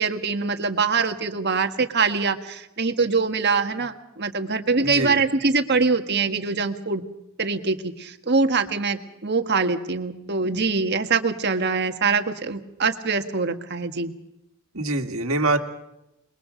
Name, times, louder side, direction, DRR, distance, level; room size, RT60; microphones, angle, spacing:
voice 1, 0.0-7.0 7.4-14.1, right 4 dB, 55° right, 7 dB, 1.6 m, -23 dB
voice 2, 4.8-5.2 10.5-10.6 14.7-15.6, right 2 dB, 80° right, 5 dB, 2.0 m, -24 dB
27.0 x 22.0 x 5.1 m, 0.88 s
head